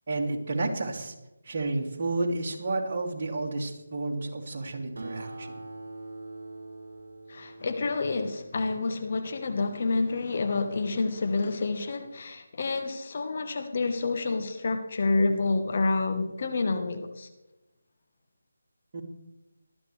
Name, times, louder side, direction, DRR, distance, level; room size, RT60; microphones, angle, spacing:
voice 1, 0.1-1.1 1.4-5.6 18.9-19.0, right 2 dB, 40° right, 0 dB, 2.6 m, -31 dB
Acoustic guitar, 5.0-9.8, right 2 dB, 65° right, 1.9 m, -44 dB
voice 2, 7.3-17.3, left 3 dB, 45° left, 8 dB, 1.3 m, -28 dB
19.0 x 13.0 x 3.4 m, 0.97 s
figure-of-eight pair, 155°, 0 cm